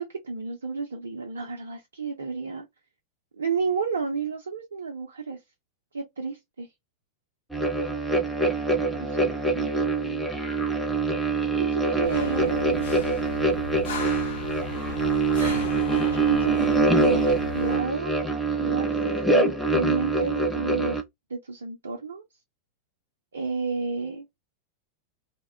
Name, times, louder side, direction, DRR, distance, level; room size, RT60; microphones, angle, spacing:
voice 1, 0.0-2.7 3.4-5.4 5.9-6.7 8.9-9.7 10.0-10.3 11.6-12.8 15.4-15.7 16.1-18.1 18.6-21.0 21.3-22.2 23.3-24.3, right 4 dB, 70° right, 0.5 m, -31 dB
sound 1, 7.5-21.0, right 3 dB, ahead, 0.6 m, -24 dB
sound 2, 12.0-17.8, left 5 dB, 60° left, 0.6 m, -37 dB
2.2 x 2.0 x 3.3 m
figure-of-eight pair, 90°, 0 cm